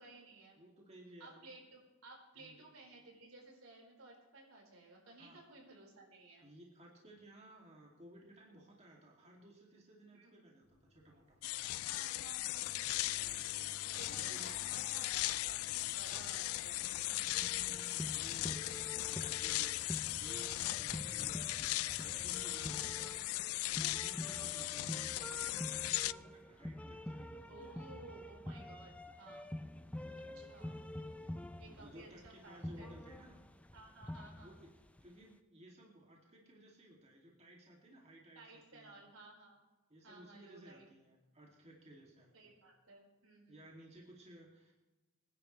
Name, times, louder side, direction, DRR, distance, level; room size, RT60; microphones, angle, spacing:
voice 1, 0.0-0.6 1.2-6.5 10.1-10.3 11.8-12.8 13.9-16.8 24.2-24.5 27.5-29.5 30.1-30.8 31.6-32.9 33.7-34.6 38.3-39.6 40.0-40.8 42.3-43.6, right 2 dB, 85° right, -1 dB, 5.0 m, -56 dB
voice 2, 0.5-1.6 2.4-2.6 5.2-5.4 6.4-11.4 13.2-14.5 17.2-27.9 29.9-30.6 31.2-33.4 34.4-39.0 39.9-42.6 43.5-44.7, right 1 dB, 30° right, -2 dB, 2.7 m, -58 dB
sound 1, 10.6-23.3, left 2 dB, 50° left, 2.7 m, -56 dB
sound 2, 11.4-26.1, left 18 dB, 80° left, 0.3 m, -38 dB
sound 3, 17.3-35.1, left 1 dB, 5° left, 0.5 m, -47 dB
25.0 x 10.5 x 3.3 m, 1.1 s
head